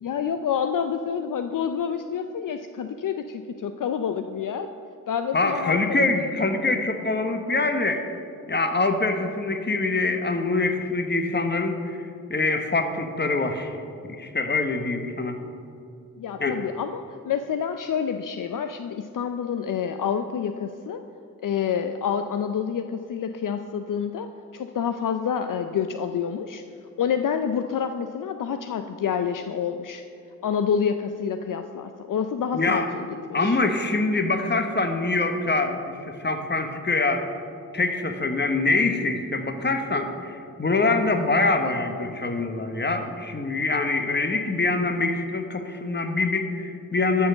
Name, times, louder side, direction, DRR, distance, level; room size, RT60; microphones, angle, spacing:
voice 1, 0.0-4.7 5.1-6.3 16.2-21.0 21.4-26.6 27.0-30.0 30.4-33.6, left 7 dB, 65° left, 8 dB, 0.5 m, -28 dB
voice 2, 5.3-8.0 8.5-12.0 12.3-13.7 14.1-15.4 16.4-16.6 32.5-32.9 33.3-37.2 37.7-47.3, left 3 dB, 30° left, 7 dB, 1.1 m, -24 dB
12.5 x 4.5 x 6.7 m, 2.6 s
cardioid pair, 40°, 35 cm